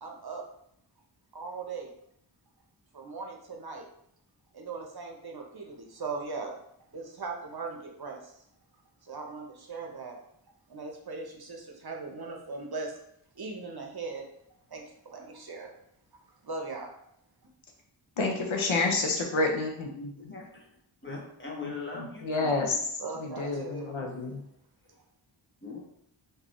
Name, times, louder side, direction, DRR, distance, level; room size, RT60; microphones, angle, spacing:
voice 1, 0.0-0.4 1.3-1.9 2.9-3.9 4.5-6.5 6.9-8.4 9.0-10.2 10.7-13.0 13.3-14.3 14.7-15.8 16.4-16.9 17.4-17.5 23.0-23.9, right 4 dB, 50° right, 1 dB, 0.7 m, -39 dB
voice 2, 18.2-20.3 21.1-21.2 21.6-24.4, left 3 dB, 75° left, 2 dB, 0.7 m, -30 dB
voice 3, 20.2-20.7 21.0-22.8 24.0-24.2 25.6-25.8, left 4 dB, 25° left, -3 dB, 1.1 m, -41 dB
3.8 x 2.7 x 3.0 m, 0.71 s
wide cardioid pair, 45°, 47 cm